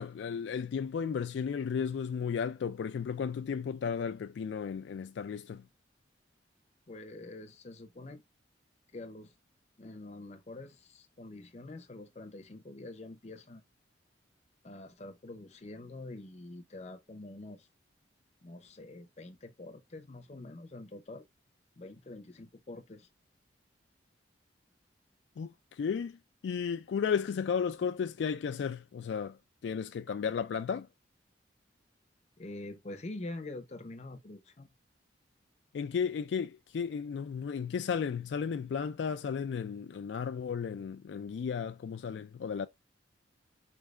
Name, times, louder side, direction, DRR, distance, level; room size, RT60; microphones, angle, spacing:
voice 1, 0.0-5.6 25.4-29.4 29.6-30.9 35.7-42.7, left 6 dB, 75° left, 0.3 m, -34 dB
voice 2, 6.9-8.2 8.9-9.3 9.8-13.6 14.6-17.7 18.4-21.2 21.8-23.1 32.4-34.7, left 2 dB, 35° left, 0.6 m, -46 dB
4.5 x 3.4 x 2.3 m
head